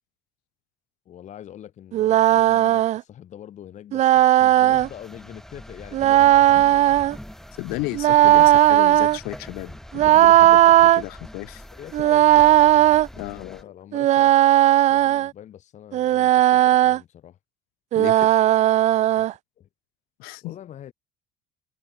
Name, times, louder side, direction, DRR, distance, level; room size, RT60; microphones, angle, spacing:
voice 1, 1.1-6.9 11.7-12.6 13.3-14.3 14.7-17.4 19.2-19.3 19.6-19.7 20.4-20.9, left 11 dB, 50° left, 3.6 m, -44 dB
sound 1, 1.9-3.0 3.9-4.9 5.9-7.2 7.9-9.2 9.9-11.0 11.9-13.1 13.9-15.3 15.9-17.0 17.9-19.3, right 14 dB, 50° right, 0.4 m, -16 dB
sound 2, 4.7-13.6, left 1 dB, 5° left, 2.0 m, -43 dB
voice 2, 7.5-11.7 13.1-13.6 17.9-18.3 20.2-20.6, left 25 dB, 80° left, 5.1 m, -34 dB
supercardioid pair, 100°, 15 cm